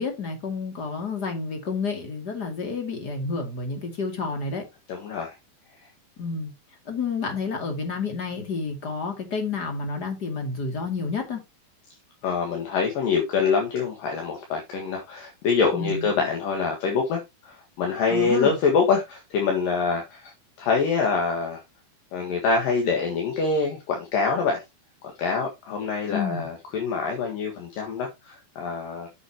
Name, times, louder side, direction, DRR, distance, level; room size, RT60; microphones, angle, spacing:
voice 1, 0.0-4.6 6.2-6.5 6.9-11.4 15.7-16.1 18.1-18.5 26.1-26.4, left 4 dB, 30° left, 2.3 m, -30 dB
voice 2, 4.9-5.3 12.2-20.3 20.6-21.6 22.1-24.6 25.0-29.1, left 5 dB, 65° left, 3.2 m, -25 dB
9.1 x 7.6 x 2.9 m
omnidirectional pair, 4.5 m